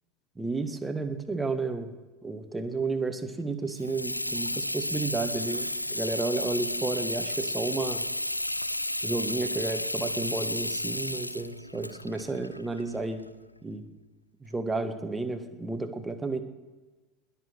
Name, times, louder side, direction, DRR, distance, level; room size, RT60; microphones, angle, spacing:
voice 1, 0.4-1.9 2.2-8.0 9.0-13.2 13.6-13.8 14.4-16.4, right 3 dB, 10° right, 8 dB, 1.5 m, -32 dB
Water tap faucet / Sink (filling or washing), 3.7-13.3, left 1 dB, 90° left, 0.4 m, -32 dB
20.5 x 7.2 x 6.3 m, 1.2 s
figure-of-eight pair, 75°, 0 cm